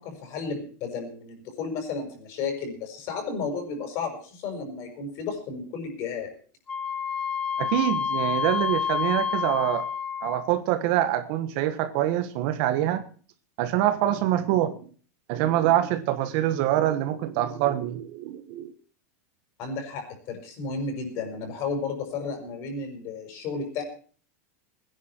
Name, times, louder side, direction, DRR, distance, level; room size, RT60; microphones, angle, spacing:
voice 1, 0.0-6.3 19.6-23.8, left 4 dB, 35° left, 5 dB, 5.9 m, -33 dB
Wind instrument woodwind instrument, 6.7-10.6, left 7 dB, 10° left, 0.9 m, -28 dB
voice 2, 7.6-9.8 10.2-13.0 13.6-14.8 15.3-18.7, right 13 dB, 40° right, 10 dB, 1.4 m, -25 dB
21.0 x 10.5 x 4.6 m, 0.42 s
supercardioid pair, 175°, 9 cm